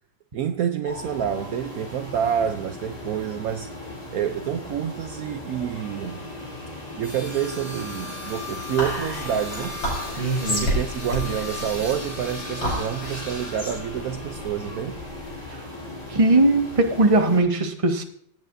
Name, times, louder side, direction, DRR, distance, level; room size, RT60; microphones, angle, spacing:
voice 1, 0.3-3.7 4.1-6.3 7.0-9.8 10.5-15.0, right 9 dB, 80° right, 0.8 m, -28 dB
sound 1, 0.8-17.4, left 2 dB, 20° left, 3.0 m, -36 dB
Whispering, 8.8-15.4, equal, 70° left, 6.4 m, -31 dB
voice 2, 10.2-10.7 16.1-18.0, right 2 dB, 25° right, 0.9 m, -20 dB
17.5 x 9.1 x 2.6 m
omnidirectional pair, 2.2 m